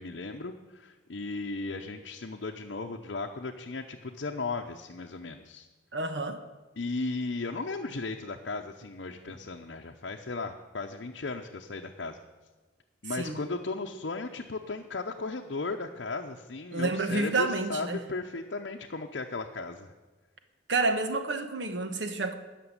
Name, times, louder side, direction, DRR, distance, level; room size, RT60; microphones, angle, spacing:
voice 1, 0.0-5.7 6.8-12.2 13.0-19.9, left 3 dB, 65° left, 2 dB, 0.7 m, -36 dB
voice 2, 5.9-6.4 13.1-13.4 16.7-18.0 20.7-22.4, right 3 dB, 65° right, 8 dB, 1.2 m, -29 dB
13.0 x 6.0 x 9.7 m, 1.2 s
head